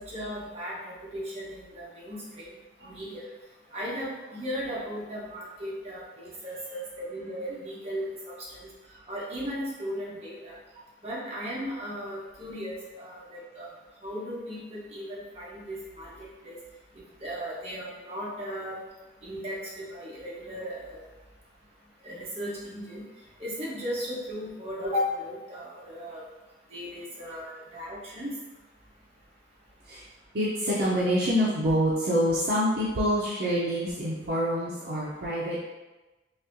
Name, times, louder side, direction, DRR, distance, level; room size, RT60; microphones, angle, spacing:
voice 1, 0.0-2.5 2.8-3.2 3.7-8.1 8.5-8.7 9.1-10.5 11.0-13.7 14.0-16.6 17.2-18.8 19.2-21.1 22.0-23.0 23.4-26.2 26.7-28.3, equal, 35° right, -7 dB, 1.2 m, -36 dB
voice 2, 30.3-35.6, equal, 65° right, -6 dB, 0.6 m, -26 dB
4.1 x 2.8 x 2.7 m, 1.1 s
head